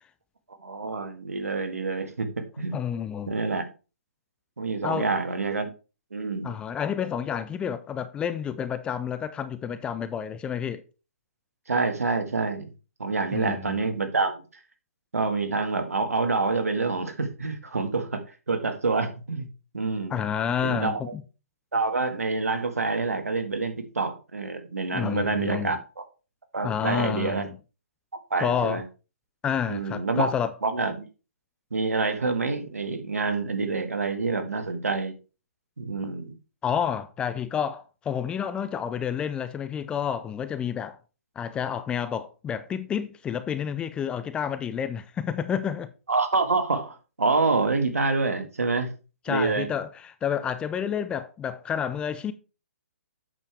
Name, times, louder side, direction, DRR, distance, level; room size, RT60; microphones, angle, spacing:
voice 1, 0.6-2.8 3.3-3.7 4.6-5.7 6.1-6.5 11.7-12.7 13.0-14.4 15.1-19.5 19.7-20.2 20.6-21.1 21.7-26.0 26.5-27.5 28.3-28.8 29.7-30.3 30.6-31.1 31.7-35.1 35.8-36.3 46.1-48.9 49.3-49.7, right 3 dB, 85° right, 1.8 m, -27 dB
voice 2, 2.7-3.3 4.8-5.1 6.4-10.8 13.3-13.8 20.1-21.2 24.9-25.8 26.6-27.6 28.4-28.8 29.4-30.5 36.6-41.0 41.4-45.9 49.3-52.3, left 8 dB, 10° left, 0.4 m, -29 dB
8.4 x 6.8 x 3.4 m
hypercardioid pair, 145°, 8 cm